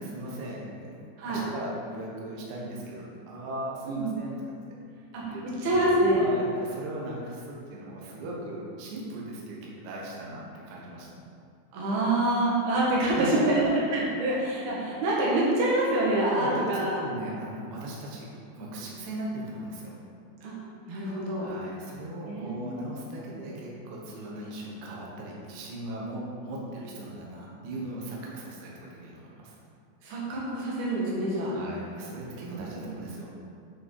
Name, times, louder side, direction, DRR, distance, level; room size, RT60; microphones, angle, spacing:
voice 1, 0.0-4.4 4.7-4.8 5.3-5.6 6.2-11.1 13.1-14.0 16.3-18.3 18.5-20.0 21.4-29.6 31.5-33.3, right 1 dB, 65° right, -4 dB, 2.4 m, -38 dB
voice 2, 3.8-4.2 5.1-6.2 11.7-13.6 13.9-17.0 20.4-20.5 20.9-21.5 22.3-22.9 30.0-31.5 32.4-32.9, right 1 dB, 90° right, -6 dB, 3.7 m, -26 dB
8.9 x 5.8 x 4.7 m, 2.4 s
omnidirectional pair, 4.3 m